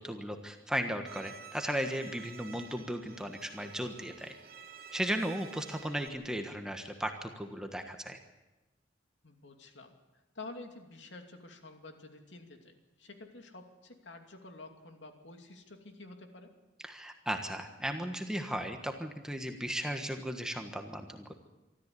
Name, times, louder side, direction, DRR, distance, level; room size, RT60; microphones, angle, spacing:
voice 1, 0.0-4.3 4.9-8.2 16.8-21.3, equal, 5° right, 4 dB, 1.4 m, -36 dB
Bowed string instrument, 1.1-6.1, right 6 dB, 50° right, 1.4 m, -51 dB
voice 2, 9.2-9.9 10.3-16.5, left 2 dB, 70° left, 4 dB, 2.7 m, -49 dB
24.5 x 13.5 x 8.4 m, 1.1 s
head